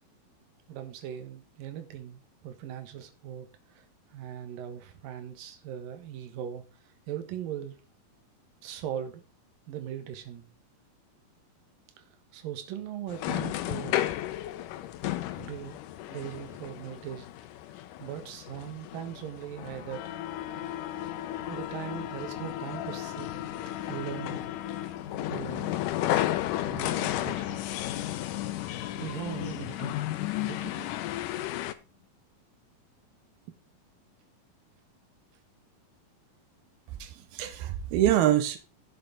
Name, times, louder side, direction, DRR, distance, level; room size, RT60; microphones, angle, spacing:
voice 1, 0.7-3.8 4.1-6.7 7.1-7.8 8.6-9.2 9.7-10.5 12.0-12.1 12.3-14.0 15.4-15.8 16.1-17.3 18.0-20.0 21.4-23.3 23.9-24.4 25.3-25.7 26.6-27.6 29.0-30.0 30.4-30.9, right 10 dB, 75° right, 3.0 m, -39 dB
sound 1, 13.1-31.7, left 14 dB, 75° left, 2.1 m, -34 dB
sound 2, 19.6-31.3, left 11 dB, 60° left, 2.5 m, -42 dB
voice 2, 37.0-38.6, right 12 dB, 90° right, 2.8 m, -25 dB
11.5 x 7.8 x 3.7 m
omnidirectional pair, 4.2 m